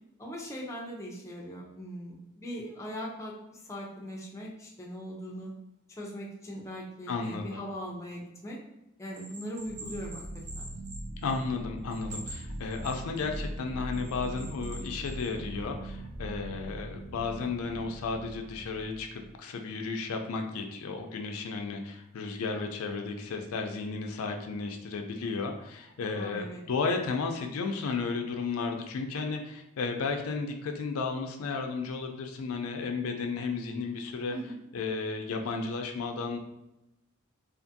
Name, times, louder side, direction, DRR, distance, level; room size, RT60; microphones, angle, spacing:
voice 1, 0.2-5.5 6.0-8.6 9.0-10.2 10.6-10.7 26.2-26.6 34.3-34.5, equal, 15° left, -2 dB, 0.4 m, -40 dB
voice 2, 7.1-7.6 11.2-34.3 34.7-36.4, left 4 dB, 80° left, 4 dB, 0.4 m, -33 dB
Bell, 9.1-11.6 11.9-13.4 13.9-15.3, right 2 dB, 35° right, 0.8 m, -46 dB
sound 1, 9.5-19.4, right 1 dB, 85° right, 0.7 m, -41 dB
2.5 x 2.5 x 2.5 m, 0.91 s
head